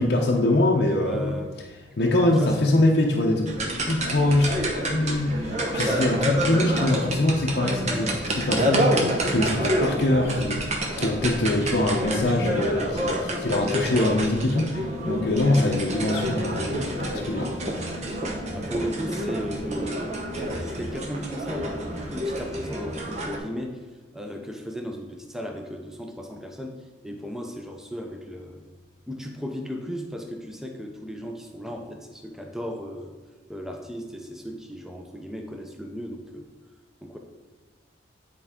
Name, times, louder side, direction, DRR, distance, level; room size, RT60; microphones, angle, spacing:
voice 1, 0.0-1.4 2.0-4.6 4.8-17.5, left 1 dB, 55° left, -2 dB, 0.7 m, -24 dB
voice 2, 0.9-1.5 2.2-2.7 3.8-4.0 7.9-8.5 11.5-11.7 18.5-21.8 22.1-23.8 24.1-26.8 27.0-28.6 29.1-33.1 33.5-36.5 37.0-37.2, equal, ahead, 2 dB, 0.6 m, -35 dB
sound 1, 3.5-23.4, equal, 35° right, 0.9 m, -28 dB
9.8 x 4.5 x 3.6 m, 1.3 s
head